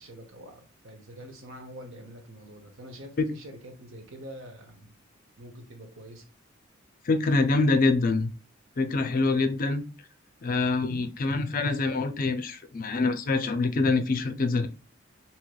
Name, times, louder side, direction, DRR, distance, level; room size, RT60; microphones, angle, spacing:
voice 1, 0.0-4.9 5.4-6.3 7.3-7.8 9.1-9.5, equal, 65° right, 0.9 m, -46 dB
voice 2, 7.0-8.3 8.8-9.8 10.4-14.7, left 3 dB, 40° left, 0.4 m, -25 dB
3.1 x 2.8 x 2.3 m
head